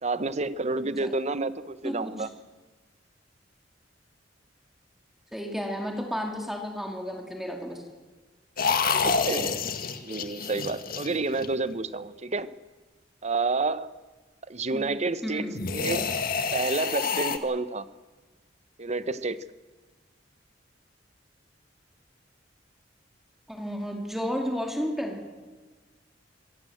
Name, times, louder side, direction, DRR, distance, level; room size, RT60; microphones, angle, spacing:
voice 1, 0.0-2.3 8.9-9.6 10.0-12.5 13.2-13.9 14.5-16.1 16.5-17.9 18.8-19.4, right 3 dB, 40° right, 14 dB, 0.9 m, -29 dB
voice 2, 0.8-1.2 1.8-2.3 5.3-7.8 14.7-14.9 15.2-15.6 23.5-25.2, equal, ahead, 2 dB, 2.5 m, -32 dB
sound 1, 8.6-11.7 15.5-17.4, left 5 dB, 55° left, 1.7 m, -28 dB
26.0 x 16.5 x 7.9 m, 1.3 s
head